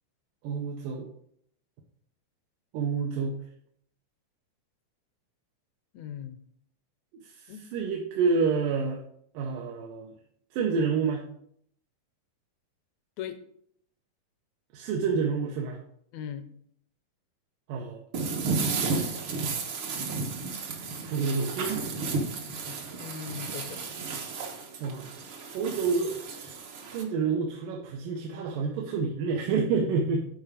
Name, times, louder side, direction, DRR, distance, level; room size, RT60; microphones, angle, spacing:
voice 1, 0.4-1.1 2.7-3.4 7.2-9.0 9.3-10.1 10.5-11.3 14.7-15.8 17.7-18.0 21.0-21.9 24.8-25.1 25.5-26.6 26.9-30.3, right 5 dB, 80° right, 0 dB, 2.5 m, -28 dB
voice 2, 5.9-6.4 7.5-7.6 13.2-13.4 16.1-16.5 23.0-23.8, left 9 dB, 75° left, 9 dB, 1.7 m, -38 dB
sound 1, 18.1-27.0, right 4 dB, 65° right, 1.3 m, -33 dB
9.4 x 4.8 x 5.0 m, 0.67 s
omnidirectional pair, 3.8 m